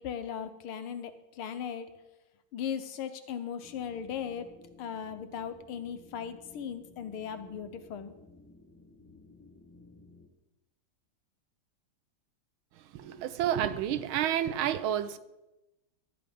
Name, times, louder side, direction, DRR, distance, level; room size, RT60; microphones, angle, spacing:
voice 1, 0.0-1.9 2.5-4.5 4.8-8.1, left 8 dB, 85° left, 1.8 m, -38 dB
sound 1, 3.6-10.3, left 3 dB, 10° left, 0.8 m, -56 dB
voice 2, 12.9-15.2, right 10 dB, 80° right, 1.5 m, -30 dB
13.0 x 10.0 x 5.3 m
omnidirectional pair, 2.3 m